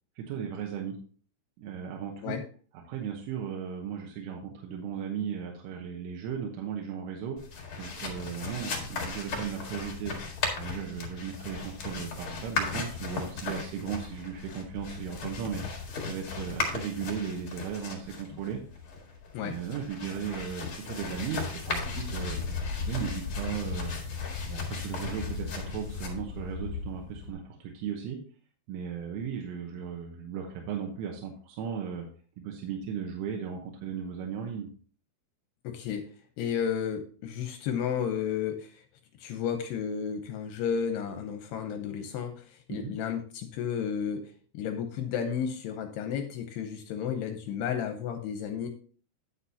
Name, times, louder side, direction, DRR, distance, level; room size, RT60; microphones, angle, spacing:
voice 1, 0.2-1.0 1.6-2.4 2.9-7.4 7.8-10.1 10.5-18.6 19.4-22.4 22.9-23.9 24.5-28.2 28.7-32.1 32.4-34.7 42.7-42.9, right 7 dB, 90° right, 1 dB, 3.5 m, -36 dB
sound 1, 7.4-27.3, left 4 dB, 60° left, 1.3 m, -36 dB
voice 2, 35.6-36.1 36.4-38.8 39.2-48.7, left 8 dB, 80° left, 6 dB, 2.5 m, -32 dB
9.8 x 7.9 x 2.8 m, 0.41 s
omnidirectional pair, 5.4 m